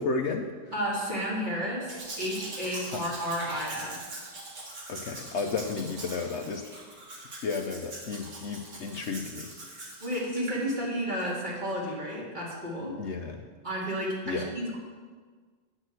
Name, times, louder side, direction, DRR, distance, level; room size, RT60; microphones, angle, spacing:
voice 1, 0.0-0.7 2.8-3.1 4.9-6.7 7.4-9.8 13.0-13.4 14.3-14.5, left 4 dB, 60° left, 4 dB, 0.9 m, -33 dB
voice 2, 0.7-4.1 10.0-13.0 13.6-14.8, equal, 35° right, -5 dB, 2.6 m, -32 dB
Domestic sounds home sounds, 1.9-10.6 11.2-11.3, right 2 dB, 90° right, 2.3 m, -42 dB
8.8 x 6.3 x 7.8 m, 1.5 s
omnidirectional pair, 1.4 m